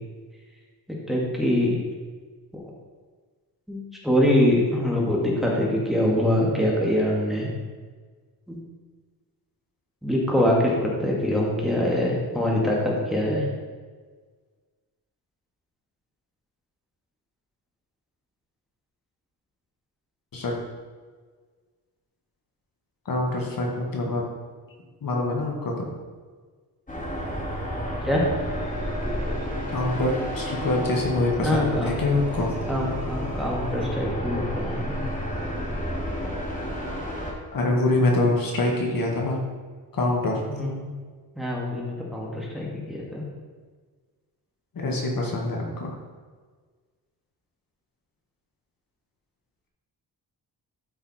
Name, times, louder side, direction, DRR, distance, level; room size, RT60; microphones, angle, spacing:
voice 1, 0.9-1.8 3.7-7.5 8.5-8.6 10.0-13.5 28.0-28.2 31.4-31.9 32.7-35.0 40.5-40.9 41.4-43.3, left 1 dB, ahead, -4 dB, 2.4 m, -24 dB
voice 2, 23.1-24.2 25.0-25.9 29.7-32.5 37.5-39.4 39.9-40.4 44.7-45.9, left 2 dB, 60° left, -1 dB, 2.0 m, -25 dB
sound 1, 26.9-37.3, equal, 20° left, 2.4 m, -31 dB
12.5 x 5.7 x 4.4 m, 1.5 s
cardioid pair, 105°, 39 cm